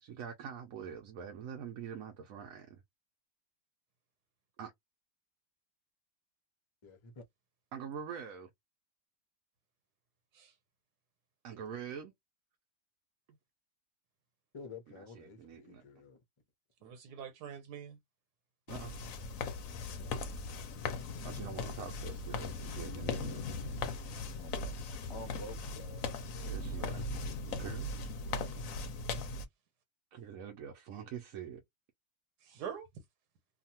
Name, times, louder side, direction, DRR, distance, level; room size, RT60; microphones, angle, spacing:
voice 1, 0.0-2.8 4.6-4.7 7.7-8.5 11.4-12.1 15.0-15.8 18.7-19.0 21.2-23.4 26.5-27.2 27.5-27.9 30.1-31.6, right 7 dB, 65° right, 1.0 m, -45 dB
voice 2, 6.8-7.2 14.5-16.2 24.4-24.5 25.1-26.5, left 2 dB, 35° left, 0.5 m, -49 dB
voice 3, 16.8-18.0 24.1-24.2 26.6-26.9 32.4-32.9, right 8 dB, 85° right, 1.4 m, -45 dB
sound 1, 18.7-29.5, left 3 dB, 70° left, 0.9 m, -39 dB
2.7 x 2.4 x 2.7 m
omnidirectional pair, 1.7 m